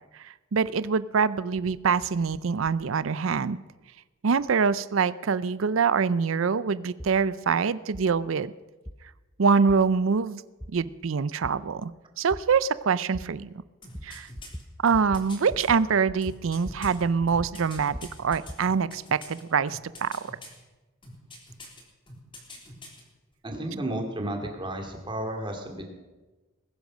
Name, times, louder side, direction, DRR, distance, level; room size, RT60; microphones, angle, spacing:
voice 1, 0.2-3.6 4.2-8.5 9.4-10.4 10.7-11.9 12.2-13.5 14.0-14.3 14.8-20.2, right 5 dB, 70° right, 17 dB, 0.5 m, -25 dB
sound 1, 7.0-7.1 7.9-8.1 8.9-9.0 9.7-9.8 10.6-10.7 11.4-11.5 12.3-12.4 13.1-13.2 13.9-14.1 14.4-14.7 14.9-15.2 15.5-15.8 16.1-17.0 17.2-18.6, equal, 5° left, 0.7 m, -39 dB
sound 2, 13.8-15.7 16.2-19.4 19.7-20.6 21.0-21.8 22.1-23.0 23.3-23.4, left 2 dB, 25° left, 3.5 m, -45 dB
voice 2, 23.4-25.8, right 1 dB, 25° right, 3 dB, 2.5 m, -32 dB
20.0 x 10.5 x 6.3 m, 1.2 s
head